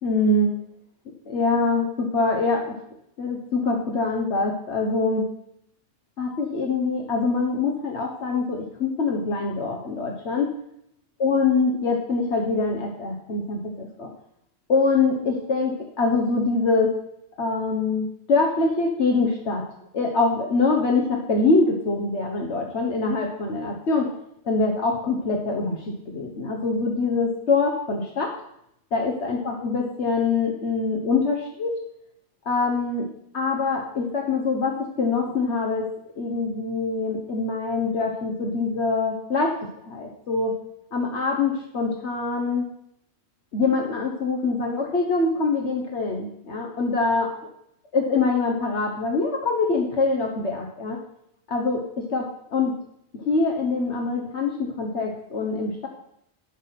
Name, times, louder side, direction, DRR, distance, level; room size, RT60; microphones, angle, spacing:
voice 1, 0.0-0.5 1.2-2.7 3.2-5.2 6.2-10.5 11.2-14.1 14.7-16.9 17.4-19.6 19.9-24.1 24.4-28.3 28.9-31.8 32.4-33.1 33.3-35.9 36.2-39.5 39.8-40.5 40.9-42.6 43.5-47.3 47.9-51.0 51.5-51.8 52.1-52.7 53.1-55.9, left 3 dB, 80° left, 1 dB, 1.5 m, -24 dB
10.0 x 5.8 x 5.9 m, 0.74 s
omnidirectional pair, 1.1 m